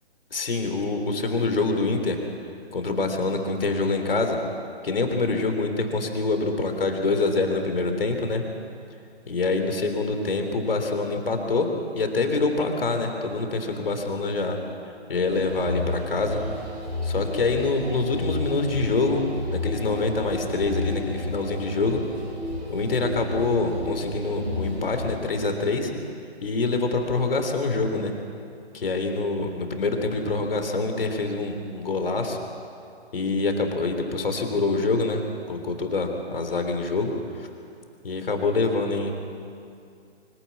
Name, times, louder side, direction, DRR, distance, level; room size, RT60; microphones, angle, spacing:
voice 1, 0.3-2.2 2.7-4.4 4.8-8.4 9.3-14.6 15.1-16.4 17.0-19.2 19.5-22.0 22.7-25.9 26.4-28.1 28.7-32.4 33.1-37.5 38.0-39.1, left 3 dB, 55° left, 5 dB, 3.4 m, -25 dB
sound 1, 15.3-25.1, left 2 dB, 85° right, 7.4 m, -32 dB
24.5 x 16.5 x 8.6 m, 2.4 s
figure-of-eight pair, 140°, 33 cm